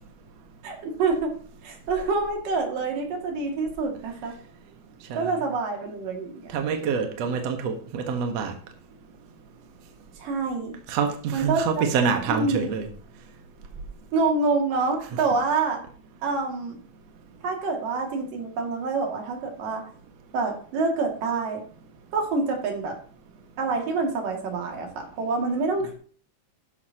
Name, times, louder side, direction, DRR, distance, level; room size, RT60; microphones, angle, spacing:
voice 1, 0.6-1.3 1.6-4.3 5.2-6.5 10.2-10.8 11.3-11.8 12.3-12.7 14.1-15.8 16.2-16.8 17.4-19.8 20.3-21.6 22.1-23.0 23.6-25.9, right 4 dB, 85° right, 4.0 m, -26 dB
voice 2, 6.5-8.5 10.9-12.9 15.1-15.2, right 6 dB, 60° right, 2.3 m, -26 dB
12.5 x 11.0 x 2.9 m
omnidirectional pair, 3.8 m